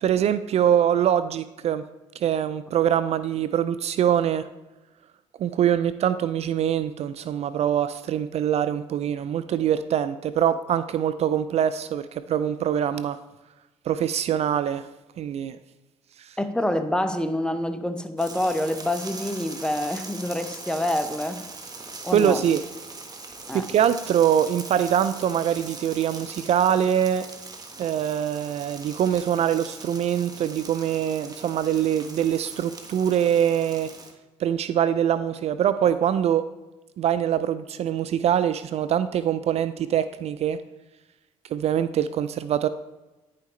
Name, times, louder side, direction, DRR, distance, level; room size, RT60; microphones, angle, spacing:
voice 1, 0.0-1.8 2.2-4.5 5.4-13.2 13.9-14.9 15.2-15.6 16.2-16.3 22.1-22.6 23.5-27.3 27.8-33.9 34.4-36.5 37.0-40.6 41.5-42.7, right 9 dB, 50° right, 13 dB, 0.4 m, -23 dB
voice 2, 16.4-21.4 22.0-22.4 23.5-23.7, left 1 dB, 5° left, 9 dB, 0.7 m, -27 dB
sound 1, 18.2-34.1, right 3 dB, 30° right, 1.2 m, -41 dB
9.8 x 5.7 x 3.1 m, 1.1 s
supercardioid pair, 65°, 13 cm